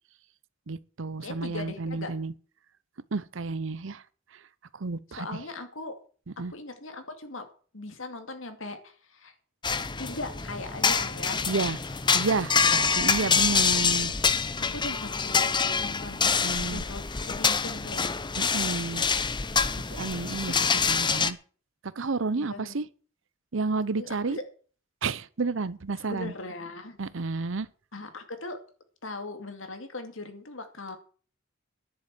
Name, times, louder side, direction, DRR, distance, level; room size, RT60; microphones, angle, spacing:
voice 1, 0.7-2.3 3.1-4.0 4.7-5.4 6.4-6.5 11.5-11.8 12.1-14.2 16.2-16.8 18.4-19.0 19.9-20.5 20.9-21.4 22.0-22.9 23.5-24.4 25.0-26.3 27.0-27.7, right 3 dB, 65° right, 0.7 m, -31 dB
voice 2, 1.2-2.1 5.1-5.9 6.5-7.5 7.7-9.3 10.0-11.7 12.8-13.4 14.6-18.1 20.5-20.6 22.4-22.8 24.0-24.4 26.0-27.0 27.3-27.5 27.9-28.6 29.0-31.0, left 2 dB, 70° left, 2.4 m, -39 dB
sound 1, 9.6-21.3, left 5 dB, 20° left, 0.7 m, -26 dB
10.5 x 7.4 x 9.0 m
head